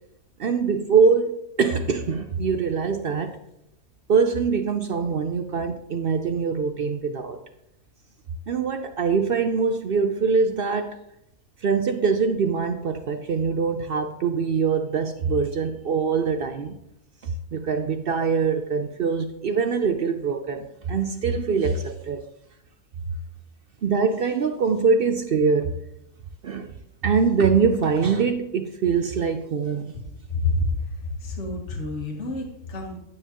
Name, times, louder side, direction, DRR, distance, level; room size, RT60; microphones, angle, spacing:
voice 1, 0.4-3.4 4.1-7.4 8.5-11.0 11.6-16.8 17.2-22.2 23.8-25.8 26.4-26.7 27.0-30.0, right 5 dB, 65° right, 7 dB, 0.5 m, -23 dB
voice 2, 30.3-30.6 31.0-33.0, left 3 dB, 55° left, 0 dB, 1.8 m, -28 dB
9.4 x 9.3 x 2.9 m, 0.80 s
omnidirectional pair, 1.5 m